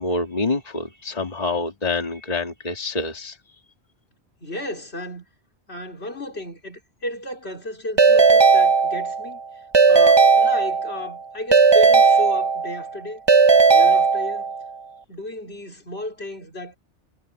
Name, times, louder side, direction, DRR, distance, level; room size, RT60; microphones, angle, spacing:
voice 1, 0.0-3.4, left 3 dB, 35° left, 2.2 m, -26 dB
voice 2, 4.4-5.3 5.7-9.6 9.9-13.2 13.7-14.6 15.1-16.8, left 1 dB, 65° left, 4.4 m, -33 dB
Keyboard (musical) / Ringtone, 8.0-9.3 9.7-11.1 11.5-12.9 13.3-14.6, right 5 dB, 30° right, 0.6 m, -16 dB
omnidirectional pair, 1.2 m